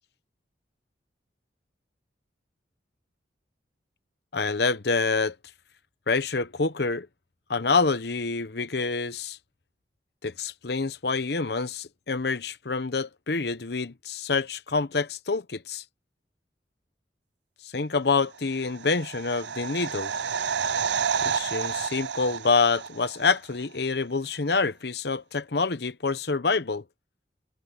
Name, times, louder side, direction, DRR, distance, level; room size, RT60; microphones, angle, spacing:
voice 1, 4.3-5.4 6.1-7.1 7.5-9.4 10.2-15.8 17.6-20.1 21.2-26.8, left 4 dB, 65° left, 0.9 m, -27 dB
sound 1, 18.5-23.4 23.6-23.7, right 6 dB, 75° right, 0.5 m, -30 dB
head